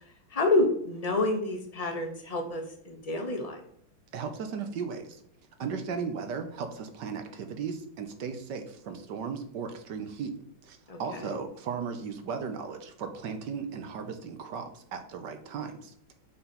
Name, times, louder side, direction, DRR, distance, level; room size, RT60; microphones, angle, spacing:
voice 1, 0.3-3.6 10.9-11.4, left 2 dB, 30° left, 3 dB, 0.8 m, -28 dB
voice 2, 4.1-5.2 5.6-10.3 10.6-16.1, right 6 dB, 65° right, 6 dB, 1.4 m, -36 dB
5.8 x 4.0 x 5.9 m, 0.67 s
omnidirectional pair, 2.2 m